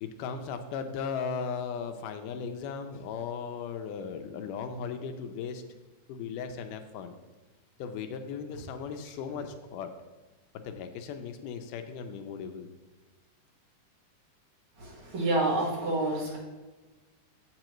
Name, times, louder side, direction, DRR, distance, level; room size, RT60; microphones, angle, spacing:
voice 1, 0.0-5.6 6.1-7.2 7.8-9.9 10.5-12.7, left 6 dB, 85° left, 7 dB, 2.2 m, -37 dB
voice 2, 14.8-16.4, right 2 dB, 50° right, -3 dB, 2.1 m, -28 dB
7.7 x 7.6 x 3.0 m, 1.2 s
omnidirectional pair, 3.7 m